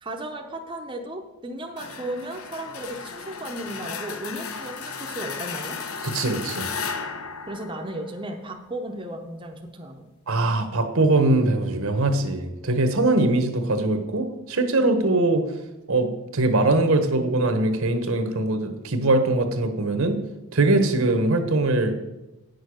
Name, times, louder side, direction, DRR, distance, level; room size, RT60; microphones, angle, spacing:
voice 1, 0.0-5.8 7.5-10.1, right 1 dB, 20° right, 2 dB, 0.7 m, -35 dB
sound 1, 1.8-8.5, left 5 dB, 75° left, 0.9 m, -35 dB
voice 2, 6.0-6.7 10.3-15.4 15.9-20.2 20.5-21.9, right 2 dB, 70° right, 7 dB, 1.1 m, -22 dB
9.0 x 6.6 x 6.2 m, 1.0 s
head